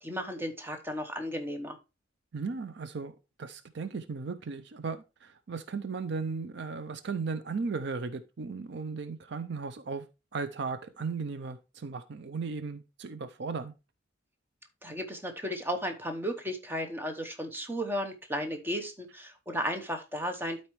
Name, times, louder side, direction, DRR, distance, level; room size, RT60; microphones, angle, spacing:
voice 1, 0.0-1.8 14.8-20.6, equal, 10° right, 5 dB, 0.9 m, -34 dB
voice 2, 2.3-3.1 3.4-10.0 10.3-13.7, right 4 dB, 60° right, 11 dB, 0.5 m, -36 dB
12.0 x 4.3 x 3.1 m, 0.27 s
head